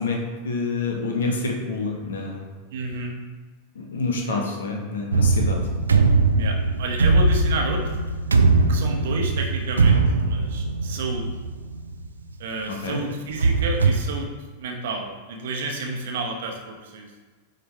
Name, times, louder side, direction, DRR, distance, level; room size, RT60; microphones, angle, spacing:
voice 1, 0.0-2.4 3.7-5.7 12.7-13.0, left 3 dB, 65° left, 1 dB, 1.2 m, -27 dB
voice 2, 2.7-3.2 4.3-4.4 6.3-8.0 8.7-11.3 12.4-14.3 14.6-17.1, right 3 dB, 55° right, 2 dB, 1.1 m, -31 dB
sound 1, 5.1-12.1 12.5-12.6 13.2-13.9, right 3 dB, 75° right, 0.5 m, -20 dB
9.3 x 3.9 x 3.3 m, 1.4 s
figure-of-eight pair, 90°, 0 cm